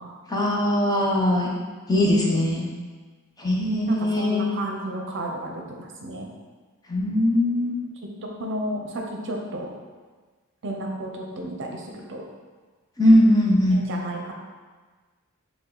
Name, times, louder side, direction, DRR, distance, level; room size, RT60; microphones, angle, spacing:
voice 1, 0.3-1.5 1.9-2.7 3.4-4.5 6.9-7.8 13.0-13.8, left 1 dB, 15° left, -3 dB, 0.6 m, -20 dB
voice 2, 2.0-2.6 3.9-6.3 8.2-9.7 10.6-12.2 13.7-14.3, right 1 dB, 55° right, 1 dB, 0.6 m, -33 dB
5.4 x 2.3 x 3.8 m, 1.4 s
head